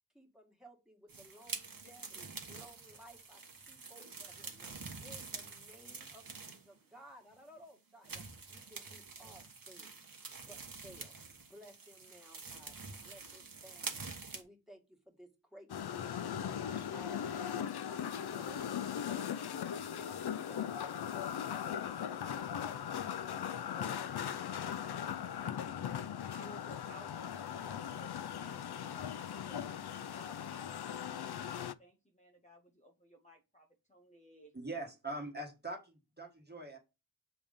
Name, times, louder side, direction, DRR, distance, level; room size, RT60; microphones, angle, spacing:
voice 1, 0.1-3.4 3.7-9.9 10.5-11.1 11.5-12.7 13.0-14.1 14.3-15.7 16.0-20.8 21.0-23.4 23.7-24.3 24.6-25.3, equal, ahead, 0 dB, 1.9 m, -58 dB
sound 1, 1.1-6.8 7.3-7.4 8.0-14.4, right 4 dB, 60° right, 1.2 m, -47 dB
sound 2, 15.7-31.7, left 9 dB, 80° left, 0.5 m, -39 dB
voice 2, 26.3-28.6 29.1-29.7 30.1-34.5, left 1 dB, 20° left, 2 dB, 0.9 m, -57 dB
voice 3, 34.5-36.8, right 2 dB, 25° right, 2 dB, 1.5 m, -42 dB
7.0 x 3.6 x 5.1 m, 0.28 s
wide cardioid pair, 65°, 38 cm